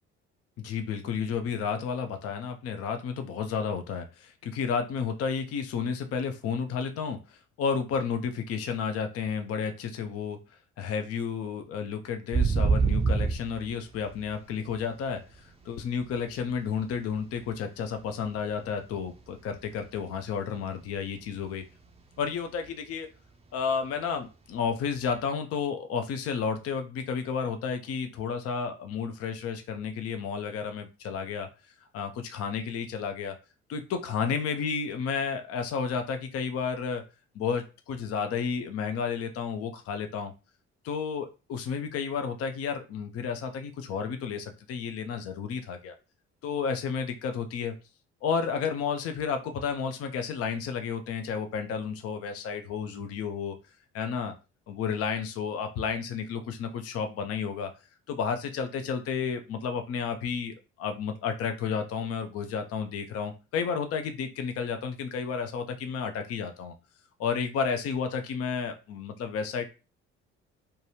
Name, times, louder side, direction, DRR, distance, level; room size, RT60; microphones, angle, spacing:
voice 1, 0.6-10.4 10.8-21.6 22.2-23.1 23.5-31.5 31.9-33.4 33.7-37.0 37.3-40.3 40.8-45.9 46.4-47.7 48.2-53.6 53.9-54.3 54.7-57.7 58.1-66.7 67.2-69.6, left 6 dB, 45° left, 7 dB, 0.6 m, -32 dB
sound 1, 12.3-15.6 16.0-18.2 18.5-18.9 19.2-21.1 21.4-21.5 21.8-22.2 22.6-22.7 24.9-25.0, right 4 dB, 20° right, 0.5 m, -27 dB
2.7 x 2.3 x 2.9 m, 0.30 s
figure-of-eight pair, 45°, 34 cm